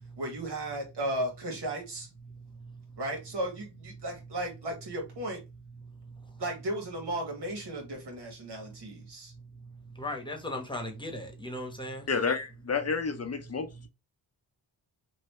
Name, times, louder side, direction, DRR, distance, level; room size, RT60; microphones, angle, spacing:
voice 1, 0.2-2.1 3.0-5.4 6.4-9.3, right 1 dB, 80° right, 1.7 m, -35 dB
voice 2, 2.3-3.0 5.8-6.4 8.6-9.1 9.3-12.1, left 1 dB, 10° left, 1.1 m, -40 dB
voice 3, 12.1-13.9, left 5 dB, 40° left, 0.6 m, -30 dB
3.1 x 2.7 x 3.0 m
cardioid pair, 85°, 40 cm